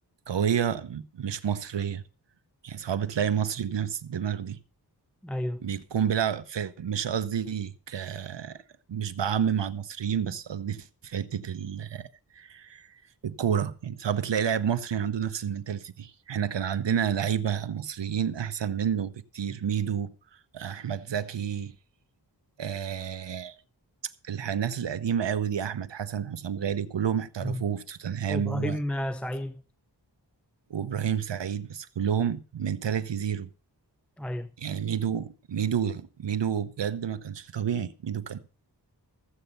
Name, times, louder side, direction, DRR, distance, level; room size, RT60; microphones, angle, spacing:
voice 1, 0.3-2.0 2.6-4.6 5.6-8.6 8.9-12.1 12.3-20.1 20.5-21.8 22.6-23.5 24.2-28.8 30.7-33.5 34.6-38.4, right 8 dB, 85° right, 0.9 m, -30 dB
voice 2, 5.2-5.6 27.4-27.6 28.3-29.6 34.2-34.5, left 1 dB, 5° left, 0.6 m, -31 dB
14.5 x 8.0 x 5.4 m
wide cardioid pair, 75°, 42 cm